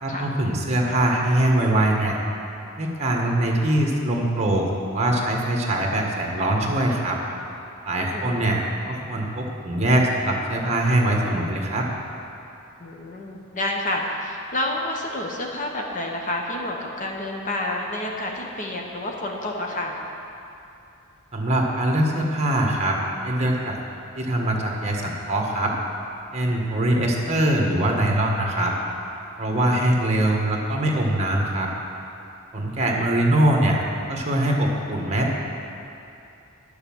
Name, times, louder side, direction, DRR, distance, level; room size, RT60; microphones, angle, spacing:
voice 1, 0.0-2.2 2.8-7.2 7.9-11.9 21.3-23.0 23.2-23.8 24.1-25.7 26.3-28.7 29.4-31.7 32.5-33.8 34.1-35.4, right 1 dB, 30° right, 0 dB, 1.4 m, -22 dB
voice 2, 8.0-8.3 12.8-20.0 29.5-29.8, left 1 dB, 35° left, 0 dB, 1.1 m, -29 dB
10.5 x 6.9 x 7.2 m, 2.7 s
head